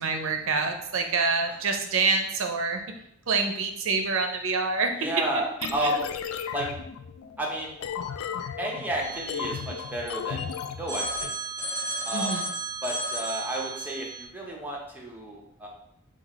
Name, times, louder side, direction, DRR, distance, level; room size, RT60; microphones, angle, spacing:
voice 1, 0.0-2.8 3.3-4.9 12.1-12.5, right 4 dB, 65° right, 4 dB, 0.6 m, -26 dB
voice 2, 5.0-6.0 6.5-6.7 7.4-7.7 8.6-10.4 10.8-11.3 12.0-12.4 12.8-15.7, right 1 dB, 10° right, -2 dB, 0.7 m, -31 dB
sound 1, 5.6-11.3, left 7 dB, 75° left, 0.3 m, -35 dB
Telephone, 9.0-10.4 10.9-14.2, right 2 dB, 10° left, 1.1 m, -34 dB
3.9 x 2.4 x 4.6 m, 0.77 s
head